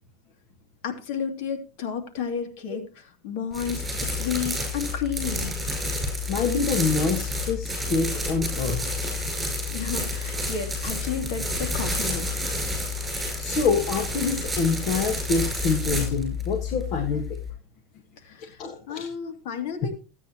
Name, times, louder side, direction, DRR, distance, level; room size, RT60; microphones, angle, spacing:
voice 1, 0.8-5.5 9.7-12.3 18.2-18.6 18.9-19.9, left 7 dB, 70° left, 6 dB, 2.6 m, -32 dB
sound 1, 3.5-17.5, left 2 dB, 10° right, 6.0 m, -29 dB
voice 2, 6.3-8.8 13.4-17.4 18.4-19.1, left 4 dB, 55° left, 4 dB, 1.6 m, -26 dB
15.5 x 9.1 x 3.0 m, 0.32 s
supercardioid pair, 125°, 0 cm